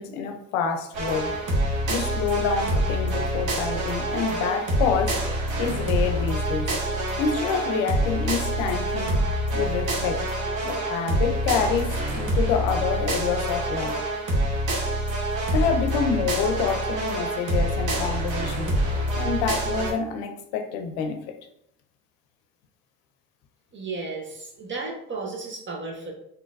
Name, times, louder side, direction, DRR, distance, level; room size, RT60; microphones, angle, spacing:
voice 1, 0.0-1.4 1.9-5.2 5.6-9.2 9.5-10.3 10.6-14.0 15.5-18.8 19.2-21.4, left 6 dB, 90° left, 7 dB, 0.6 m, -27 dB
sound 1, 0.9-19.9, right 1 dB, 60° right, 1.2 m, -26 dB
voice 2, 23.7-26.1, right 3 dB, 35° right, 0 dB, 1.0 m, -34 dB
3.9 x 2.7 x 2.5 m, 0.75 s
supercardioid pair, 80°, 35 cm